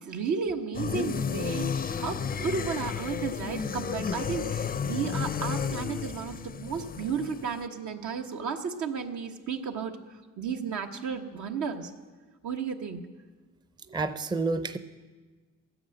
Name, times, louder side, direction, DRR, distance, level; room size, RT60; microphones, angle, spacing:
voice 1, 0.0-9.9 10.4-11.9 12.4-13.0 13.9-14.0, right 6 dB, 75° right, 4 dB, 1.4 m, -33 dB
zombie ambient (fallen valkiria), 0.7-7.6, left 6 dB, 30° left, 0.5 m, -32 dB
voice 2, 13.9-14.8, right 3 dB, 15° right, 11 dB, 0.6 m, -29 dB
14.5 x 9.6 x 7.9 m, 1.3 s
cardioid pair, 90°, 30 cm